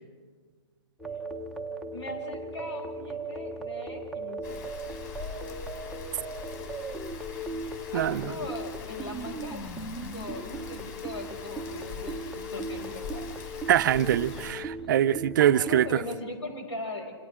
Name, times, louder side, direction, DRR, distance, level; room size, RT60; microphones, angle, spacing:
sound 1, 1.0-16.2, right 2 dB, ahead, 0.8 m, -38 dB
voice 1, 1.9-4.4 7.9-13.3 15.4-17.1, left 2 dB, 85° left, 2 dB, 6.4 m, -40 dB
Rain, 4.4-14.5, left 6 dB, 40° left, 4.4 m, -43 dB
voice 2, 7.9-8.3 13.7-16.0, right 11 dB, 45° right, 13 dB, 0.6 m, -23 dB
27.5 x 27.0 x 3.7 m, 1.5 s
hypercardioid pair, 155°, 15 cm